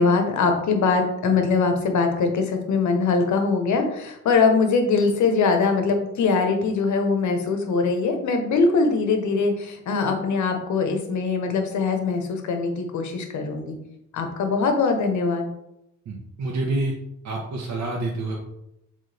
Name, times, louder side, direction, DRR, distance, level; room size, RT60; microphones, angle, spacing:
voice 1, 0.0-13.8 14.1-15.5, left 4 dB, 70° left, 5 dB, 1.3 m, -22 dB
voice 2, 16.0-16.9 17.2-18.4, right 2 dB, 65° right, -3 dB, 1.3 m, -27 dB
7.6 x 3.7 x 3.5 m, 0.82 s
cardioid pair, 90°, 30 cm